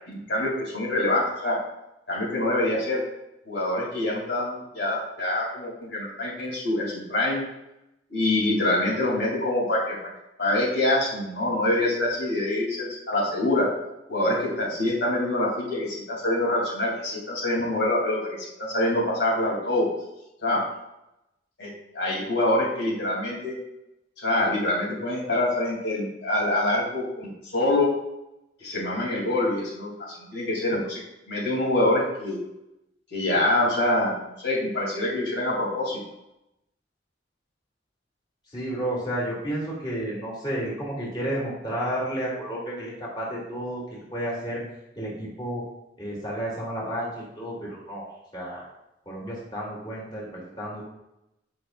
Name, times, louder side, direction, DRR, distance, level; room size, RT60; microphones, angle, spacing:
voice 1, 0.1-1.6 2.1-3.0 3.4-7.4 8.1-10.1 10.4-13.7 14.1-19.9 20.4-20.6 21.6-23.6 24.2-27.9 28.6-31.0 31.3-32.4 33.1-36.0, left 1 dB, 80° left, -4 dB, 3.2 m, -25 dB
voice 2, 38.5-44.6 44.9-45.6 46.0-48.1 48.3-48.7 49.0-50.8, right 1 dB, 25° left, -5 dB, 2.9 m, -31 dB
15.5 x 5.8 x 2.6 m, 0.89 s
head